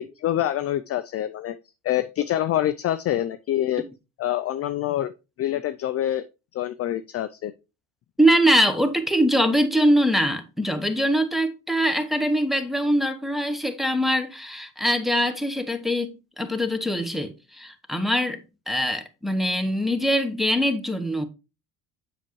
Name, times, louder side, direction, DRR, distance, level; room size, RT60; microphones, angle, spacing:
voice 1, 0.0-1.6 1.8-3.8 4.2-5.1 5.4-6.3 6.5-7.5, left 12 dB, 35° left, 0.4 m, -26 dB
voice 2, 8.2-18.4 18.7-21.3, equal, ahead, 0.9 m, -23 dB
7.4 x 5.7 x 3.1 m
hypercardioid pair, 70°, 44 cm